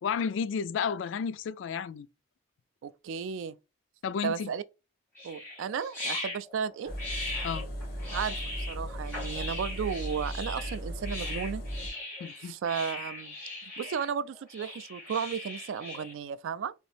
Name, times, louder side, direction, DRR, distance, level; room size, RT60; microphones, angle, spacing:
voice 1, 0.0-2.1 4.0-4.5 7.4-7.7 12.2-12.5, left 6 dB, 70° left, 0.3 m, -32 dB
voice 2, 2.8-3.6 4.2-4.6 5.2-6.9 8.1-8.4 8.7-11.6 12.4-13.3 13.8-16.7, right 7 dB, 80° right, 0.3 m, -34 dB
sound 1, 5.1-16.1, left 2 dB, 10° left, 1.7 m, -39 dB
Engine, 6.9-11.9, equal, 50° left, 1.5 m, -37 dB
3.9 x 2.6 x 3.2 m
head